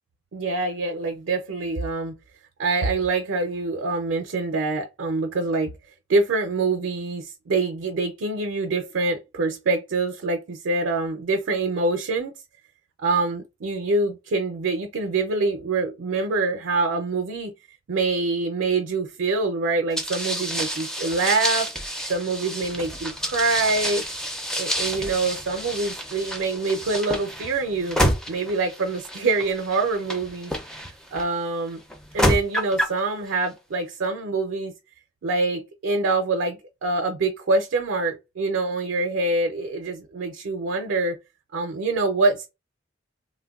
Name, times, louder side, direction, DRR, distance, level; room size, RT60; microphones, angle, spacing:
voice 1, 0.3-2.2 2.6-5.7 6.1-12.3 13.0-17.5 17.9-21.7 22.1-24.0 24.5-28.0 28.3-30.5 31.1-31.8 32.1-34.7 35.2-41.2 41.5-42.5, right 3 dB, 80° right, 0.5 m, -25 dB
sound 1, 20.0-31.2 31.9-33.0, equal, 5° left, 0.4 m, -28 dB
3.2 x 2.1 x 2.3 m
head